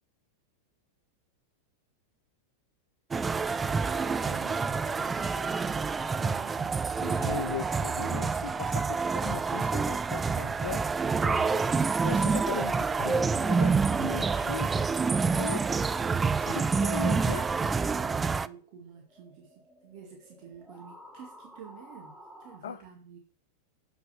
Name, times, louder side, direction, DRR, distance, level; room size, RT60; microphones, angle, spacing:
sound 1, 3.1-18.5, right 5 dB, 15° right, 0.3 m, -28 dB
voice 1, 3.8-7.0 12.1-12.3 17.0-17.4 17.8-23.2, right 7 dB, 45° right, 0 dB, 2.0 m, -48 dB
voice 2, 7.0-8.8 9.2-10.8 11.2-14.7 15.4-15.7 16.4-17.5 22.6-22.8, left 9 dB, 60° left, 12 dB, 0.5 m, -38 dB
sound 2, 18.8-22.6, equal, 5° left, 1.8 m, -53 dB
7.4 x 5.3 x 5.7 m, 0.41 s
figure-of-eight pair, 90°, 0 cm